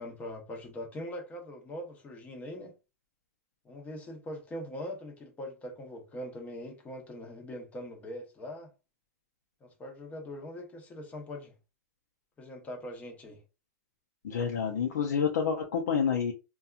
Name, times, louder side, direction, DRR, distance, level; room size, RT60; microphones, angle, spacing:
voice 1, 0.0-2.7 3.6-8.7 9.6-11.5 12.4-13.4, left 1 dB, 15° left, 0.7 m, -42 dB
voice 2, 14.2-16.3, left 7 dB, 85° left, 0.5 m, -28 dB
2.7 x 2.3 x 2.4 m
hypercardioid pair, 145°, 9 cm